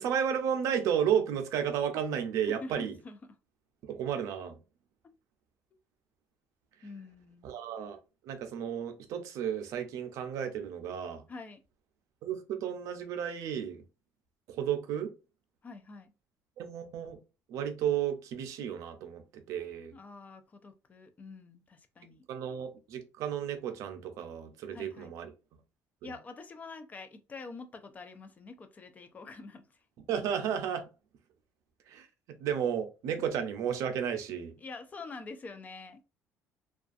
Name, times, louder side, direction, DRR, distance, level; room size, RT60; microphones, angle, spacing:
voice 1, 0.0-2.9 3.8-4.6 7.4-8.0 8.2-11.2 12.2-13.8 14.5-15.1 16.6-17.2 17.5-19.9 22.3-25.3 30.1-30.8 31.9-32.1 32.4-34.5, right 8 dB, 70° right, 0.5 m, -33 dB
voice 2, 2.5-3.4 6.8-7.6 11.3-11.6 15.6-16.1 19.9-22.2 24.7-25.1 26.0-29.8 34.6-36.0, left 3 dB, 30° left, 0.4 m, -46 dB
2.4 x 2.3 x 2.4 m
cardioid pair, 110°, 6 cm